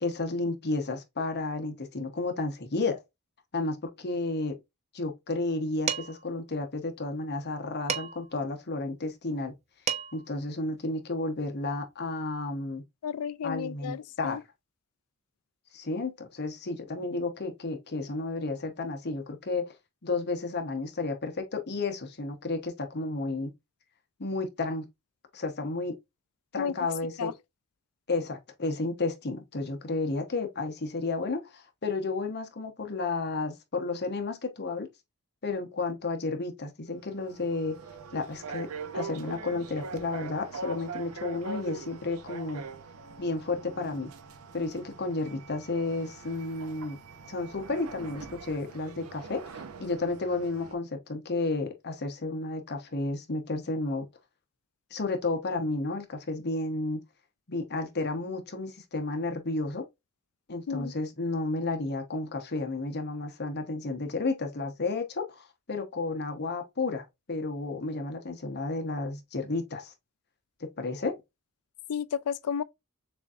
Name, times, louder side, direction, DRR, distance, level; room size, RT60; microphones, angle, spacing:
voice 1, 0.0-3.0 3.5-4.6 4.9-9.5 10.1-12.8 13.4-14.4 15.7-19.7 20.0-23.5 24.2-24.9 25.3-25.9 26.5-27.3 28.1-34.9 35.4-37.8 38.1-38.7 38.9-42.6 43.2-44.1 44.5-47.0 47.3-49.4 49.8-54.0 54.9-57.0 57.5-59.8 60.5-69.9 70.8-71.1, left 3 dB, 50° left, 1.0 m, -32 dB
Dishes pots and pans, 5.9-6.3 7.9-8.4 9.5-9.6 9.9-10.3, right 7 dB, 30° right, 0.6 m, -32 dB
voice 2, 13.0-14.4 26.6-26.7 27.2-27.3 60.7-60.9 71.9-72.6, left 7 dB, 75° left, 0.4 m, -32 dB
sound 1, 36.9-50.7, right 4 dB, 70° right, 0.7 m, -43 dB
6.7 x 2.7 x 2.4 m
head